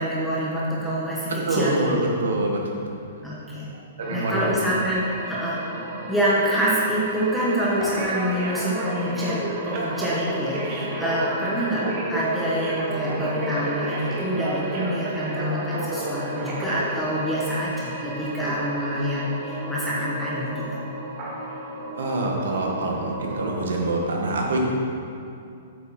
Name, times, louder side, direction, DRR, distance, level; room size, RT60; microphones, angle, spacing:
voice 1, 0.0-2.1 3.2-3.7 4.1-5.6 6.1-20.8, equal, ahead, -8 dB, 1.5 m, -26 dB
voice 2, 1.4-3.4 4.0-4.4 21.9-24.6, right 2 dB, 75° right, 0 dB, 1.6 m, -26 dB
sound 1, 4.0-23.9, right 1 dB, 45° right, 1.8 m, -32 dB
8.6 x 6.6 x 4.4 m, 2.5 s
hypercardioid pair, 135°, 0 cm